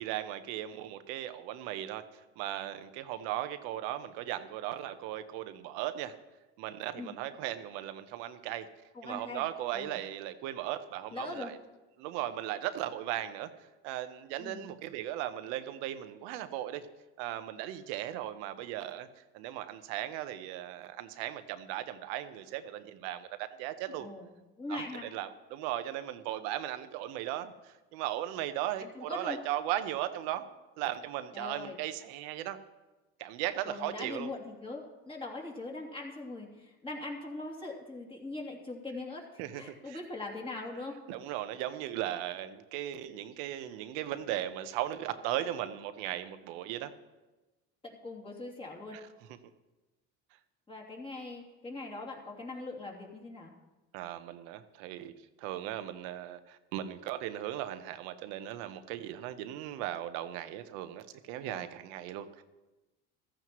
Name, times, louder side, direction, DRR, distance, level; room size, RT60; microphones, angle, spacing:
voice 1, 0.0-2.0 2.4-6.1 6.6-8.7 9.0-11.6 12.0-13.5 13.8-16.8 17.2-24.1 24.7-30.5 30.8-32.6 33.2-34.3 39.4-40.0 41.1-46.9 48.9-49.0 53.9-55.1 55.4-62.4, right 12 dB, 90° right, 10 dB, 1.0 m, -37 dB
voice 2, 8.9-9.4 9.7-10.0 11.1-11.5 14.4-14.7 24.0-24.3 24.6-25.1 28.8-29.4 31.3-31.8 33.6-41.0 47.8-49.0 50.7-53.5 61.4-61.7, left 2 dB, 15° left, -2 dB, 2.9 m, -41 dB
15.0 x 14.5 x 3.1 m, 1.1 s
cardioid pair, 115°, 31 cm